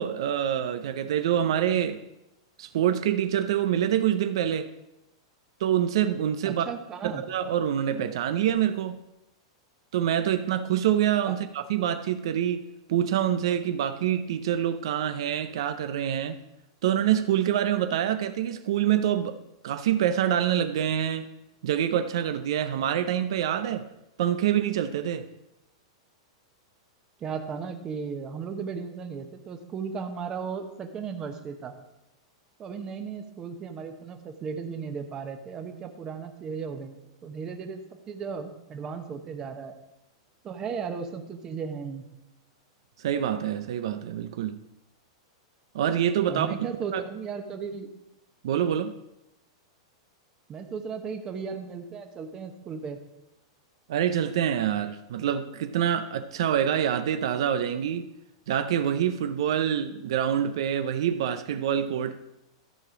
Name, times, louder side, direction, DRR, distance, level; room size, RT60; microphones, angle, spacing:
voice 1, 0.0-2.0 2.6-4.7 5.6-6.7 7.0-9.0 9.9-12.6 12.9-16.4 16.8-19.4 19.6-21.3 21.6-23.9 24.2-25.3 43.0-44.6 45.7-46.5 46.9-47.0 48.4-48.9 53.9-58.1 58.5-62.2, right 10 dB, 65° right, 0.5 m, -26 dB
voice 2, 6.4-7.2 11.3-11.4 27.2-31.7 32.6-37.0 37.2-37.8 38.1-39.8 40.4-42.0 46.3-47.9 50.5-53.0, right 6 dB, 20° right, 0.9 m, -35 dB
13.5 x 4.9 x 5.0 m
supercardioid pair, 155°, 3 cm